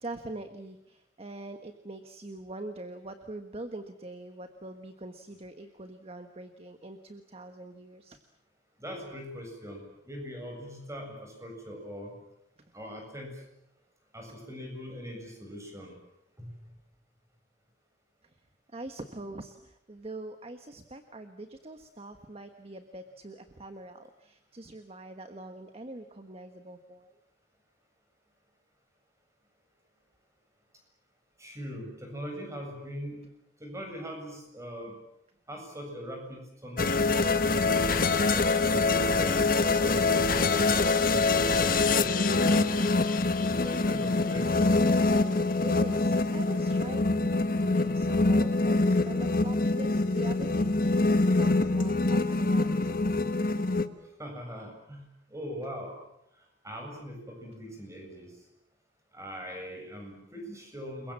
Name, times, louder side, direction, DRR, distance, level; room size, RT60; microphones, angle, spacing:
voice 1, 0.0-8.2 18.7-27.1 45.6-52.9, right 2 dB, 35° right, 8 dB, 1.4 m, -43 dB
voice 2, 8.8-12.1 12.7-13.4 14.1-15.9 16.4-16.6 31.4-33.2 33.6-35.0 35.5-37.1 38.3-40.9 41.3-42.7 43.4-44.9 54.2-55.9 56.6-58.3 59.1-61.1, equal, 15° right, 3 dB, 7.7 m, -41 dB
sound 1, 36.8-53.9, left 3 dB, 55° left, 1.4 m, -25 dB
29.0 x 22.5 x 7.5 m, 0.83 s
head